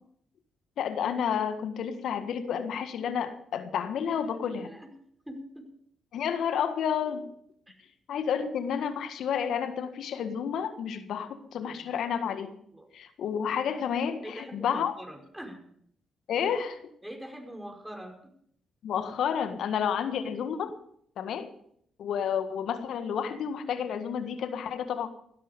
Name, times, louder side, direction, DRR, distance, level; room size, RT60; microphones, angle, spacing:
voice 1, 0.8-4.7 6.1-7.3 8.1-12.5 12.9-14.9 16.3-16.8 18.8-20.7 21.2-21.5 22.0-25.1, left 8 dB, 70° left, 10 dB, 1.6 m, -30 dB
voice 2, 4.1-4.9 5.3-5.7 7.7-7.8 8.2-8.3 11.6-12.0 12.7-12.9 14.2-15.6 17.0-18.3, equal, 5° right, 3 dB, 5.3 m, -44 dB
16.5 x 12.5 x 5.3 m, 0.66 s
hypercardioid pair, 45°, 0 cm